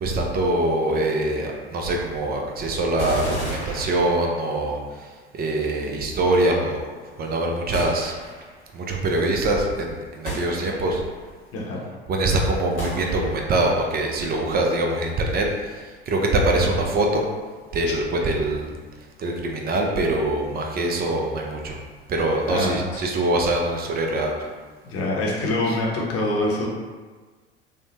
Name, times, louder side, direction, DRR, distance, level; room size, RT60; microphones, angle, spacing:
voice 1, 0.0-4.8 5.3-6.8 7.2-8.1 8.7-11.0 12.1-17.3 17.7-18.7 19.2-21.8 22.1-24.3 25.7-25.8, right 2 dB, 30° right, 1 dB, 0.5 m, -23 dB
sound 1, 3.0-4.6 7.7-8.6 10.3-11.2 12.8-13.6, right 1 dB, 90° left, 0.9 m, -33 dB
voice 2, 11.5-11.9 12.9-13.0 22.5-23.0 24.8-26.7, left 2 dB, 45° left, -3 dB, 0.8 m, -25 dB
3.1 x 2.0 x 2.9 m, 1.4 s
figure-of-eight pair, 70°, 33 cm